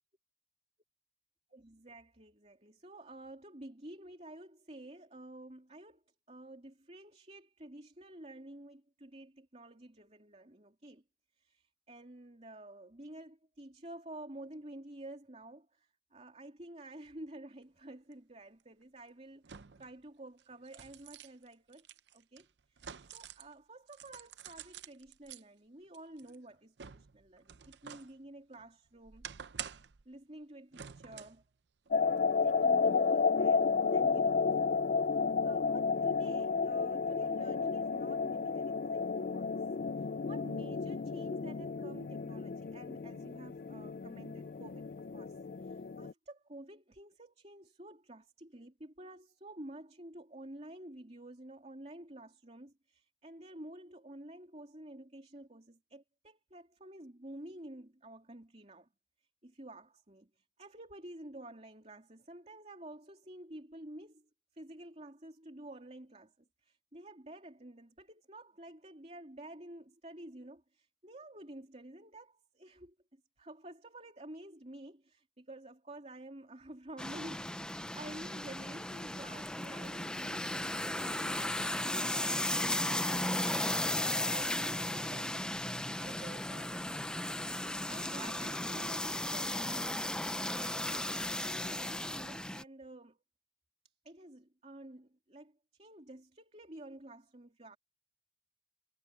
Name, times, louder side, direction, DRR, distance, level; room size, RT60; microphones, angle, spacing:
voice 1, 1.5-11.0 11.4-21.8 22.1-22.8 23.1-29.3 30.0-31.4 32.4-34.7 35.2-39.5 40.0-58.9 59.4-66.3 66.6-83.6 83.9-93.2 94.0-97.8, right 1 dB, 35° right, 3.0 m, -51 dB
sound 1, 18.1-18.2 19.4-19.9 20.4-23.5 23.9-25.4 25.9-28.1 28.5-30.0 30.7-31.4 31.9-32.0, right 8 dB, 65° right, 0.6 m, -48 dB
sound 2, 31.9-46.1, left 5 dB, 45° left, 0.4 m, -32 dB
sound 3, 77.0-92.6, left 1 dB, 5° left, 0.6 m, -35 dB
head